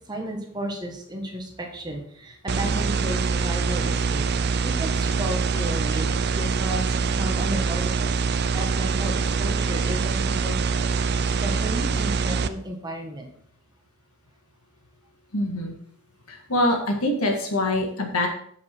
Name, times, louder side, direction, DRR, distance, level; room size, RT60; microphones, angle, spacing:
voice 1, 0.1-8.1 8.5-10.9 11.4-13.3, right 1 dB, 20° right, 1 dB, 1.4 m, -33 dB
sound 1, 2.5-12.5, right 5 dB, 50° right, 0.5 m, -24 dB
voice 2, 15.3-15.7 16.3-18.3, left 1 dB, 85° left, 3 dB, 1.8 m, -24 dB
8.1 x 6.9 x 4.5 m, 0.64 s
head